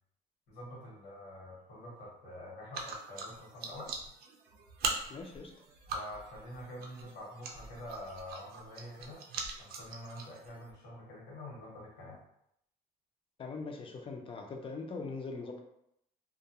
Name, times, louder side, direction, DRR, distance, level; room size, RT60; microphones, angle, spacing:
voice 1, 0.5-4.0 5.9-9.2 9.6-12.2, left 1 dB, 80° left, -6 dB, 1.1 m, -46 dB
sound 1, 2.7-10.7, right 4 dB, 70° right, 0.5 m, -42 dB
voice 2, 5.1-5.5 13.4-15.6, left 4 dB, 30° left, 2 dB, 0.5 m, -41 dB
2.3 x 2.2 x 2.8 m, 0.75 s
cardioid pair, 110°, 17 cm